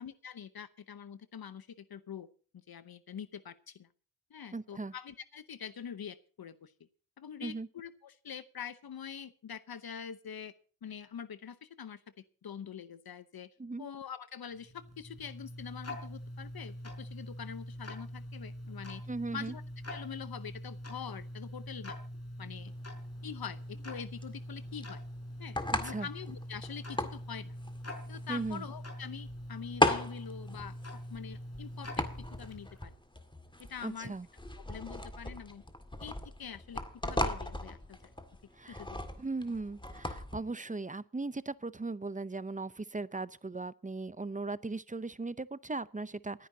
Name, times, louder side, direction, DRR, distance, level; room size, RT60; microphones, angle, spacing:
voice 1, 0.0-2.3 2.7-3.9 4.3-6.7 7.2-10.5 10.8-13.5 13.8-19.0 19.3-19.6 19.9-22.0 22.4-22.7 23.2-25.0 25.4-27.5 28.1-30.8 31.1-32.0 32.4-32.9 33.6-34.1 34.6-35.6 36.0-38.1 38.7-39.0, left 7 dB, 70° left, 0.9 m, -45 dB
voice 2, 4.5-4.9 7.4-7.7 13.6-13.9 19.1-19.5 25.8-26.1 28.3-28.6 33.8-34.3 38.5-38.8 39.2-46.5, right 3 dB, 20° right, 0.7 m, -38 dB
Tick-tock, 14.6-32.9, equal, 40° left, 5.4 m, -44 dB
sound 1, 22.7-40.4, left 1 dB, 10° left, 2.0 m, -37 dB
28.0 x 10.5 x 2.8 m
cardioid pair, 60°, 38 cm